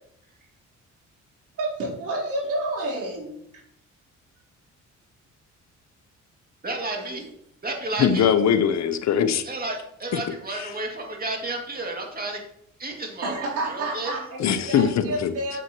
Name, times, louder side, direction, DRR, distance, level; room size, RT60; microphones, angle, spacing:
voice 1, 1.6-3.4 6.9-7.2 13.2-15.6, right 2 dB, 85° right, -6 dB, 3.7 m, -30 dB
voice 2, 6.6-7.3 7.6-8.3 9.4-12.4 12.8-13.3 13.7-14.2, right 2 dB, 30° right, 1 dB, 2.4 m, -31 dB
voice 3, 8.0-9.4 10.5-10.7 14.4-15.3, left 8 dB, 65° left, 10 dB, 0.9 m, -21 dB
9.1 x 7.8 x 3.0 m, 0.73 s
cardioid pair, 90°, 30 cm